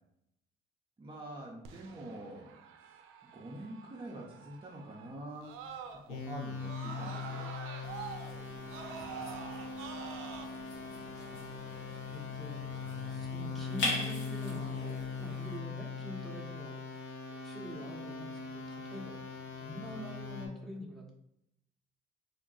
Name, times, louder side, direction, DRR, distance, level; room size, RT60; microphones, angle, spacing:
voice 1, 1.0-5.6 6.1-7.5, right 1 dB, 25° right, -3 dB, 0.6 m, -46 dB
Screaming, 1.6-6.3 6.6-10.4, right 7 dB, 85° right, 0.5 m, -47 dB
sound 1, 6.1-20.5, left 5 dB, 90° left, 0.8 m, -41 dB
sound 2, 7.8-15.6, left 2 dB, 65° left, 1.1 m, -42 dB
voice 2, 8.8-9.5 11.1-17.1 17.4-19.2 19.6-21.1, equal, ahead, -3 dB, 0.9 m, -46 dB
3.5 x 2.2 x 3.8 m, 0.80 s
cardioid pair, 100°, 20 cm